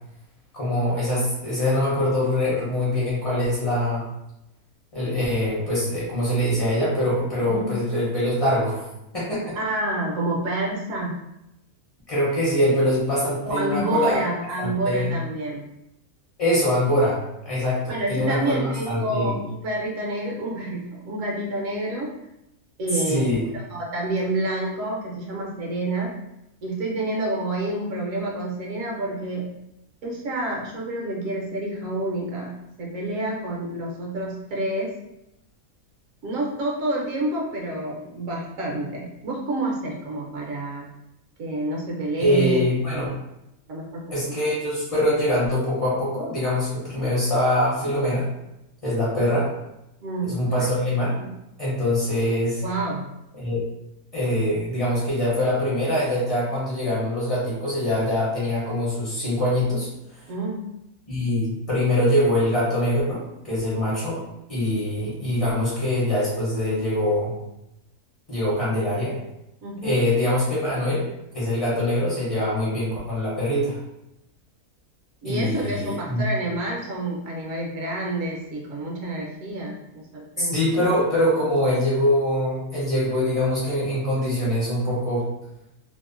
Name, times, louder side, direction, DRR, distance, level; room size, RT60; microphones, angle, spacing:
voice 1, 0.5-4.1 4.9-8.9 9.1-9.6 12.1-14.2 14.6-15.1 16.4-19.4 23.1-23.5 42.2-43.2 44.1-48.3 48.8-49.5 50.2-51.2 51.6-52.6 53.4-53.7 54.1-60.2 61.1-64.2 64.5-67.3 68.3-69.2 69.8-71.1 71.3-73.8 75.2-76.2 80.4-85.2, left 1 dB, 40° left, -8 dB, 0.5 m, -23 dB
voice 2, 7.4-7.7 9.6-11.2 13.4-15.7 17.9-22.1 22.8-23.3 23.5-26.2 26.6-29.6 30.0-32.5 32.8-34.9 36.2-40.9 41.4-42.6 43.7-44.0 44.3-44.4 50.0-50.7 51.0-51.3 52.6-53.0 60.3-60.7 69.6-70.0 75.2-80.6, right 2 dB, 65° right, -2 dB, 1.0 m, -28 dB
2.8 x 2.1 x 2.4 m, 0.88 s
omnidirectional pair, 1.6 m